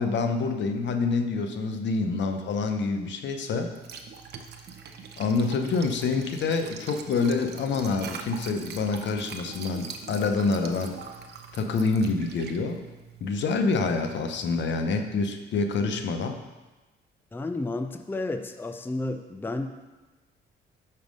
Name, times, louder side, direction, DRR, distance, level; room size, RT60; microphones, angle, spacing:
voice 1, 0.0-3.7 5.2-11.0 11.5-12.8 13.2-16.4, left 4 dB, 65° left, 6 dB, 0.8 m, -27 dB
Liquid, 3.6-14.8, right 6 dB, 55° right, 0.7 m, -43 dB
voice 2, 17.3-20.0, left 2 dB, 10° left, 8 dB, 0.4 m, -32 dB
6.1 x 5.5 x 5.2 m, 1.2 s
cardioid pair, 90°, 20 cm